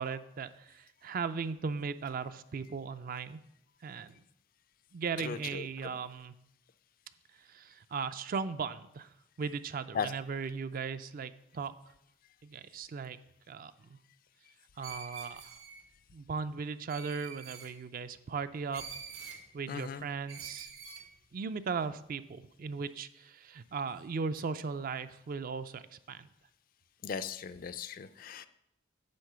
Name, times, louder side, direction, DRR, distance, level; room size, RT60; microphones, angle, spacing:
voice 1, 0.0-3.4 3.8-4.2 4.9-6.3 7.4-11.7 12.4-13.2 13.5-14.0 14.8-15.5 16.1-18.9 19.5-20.7 21.3-26.3, right 5 dB, 45° right, 12 dB, 0.3 m, -37 dB
voice 2, 5.3-5.6 10.0-10.1 19.7-20.0 27.0-28.5, left 6 dB, 45° left, 13 dB, 0.3 m, -37 dB
Screech, 14.8-15.8 16.9-17.7 18.7-19.4 20.3-21.0, right 6 dB, 80° right, 1.4 m, -46 dB
9.5 x 3.7 x 6.6 m, 0.80 s
head